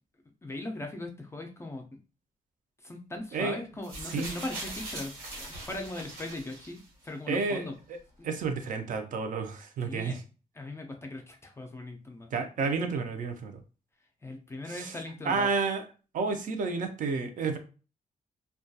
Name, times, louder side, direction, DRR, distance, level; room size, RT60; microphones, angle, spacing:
voice 1, 0.4-1.9 2.8-7.8 8.2-8.3 9.8-10.2 10.5-12.3 14.0-15.5, left 2 dB, 20° left, 2 dB, 0.3 m, -39 dB
sound 1, 3.8-7.1 8.0-8.1, right 2 dB, 85° right, 0.9 m, -41 dB
voice 2, 7.3-7.6 8.2-10.1 12.3-13.5 15.3-15.8 16.1-17.6, right 4 dB, 70° right, 6 dB, 0.4 m, -30 dB
2.2 x 2.2 x 2.6 m, 0.35 s
wide cardioid pair, 160°, 14 cm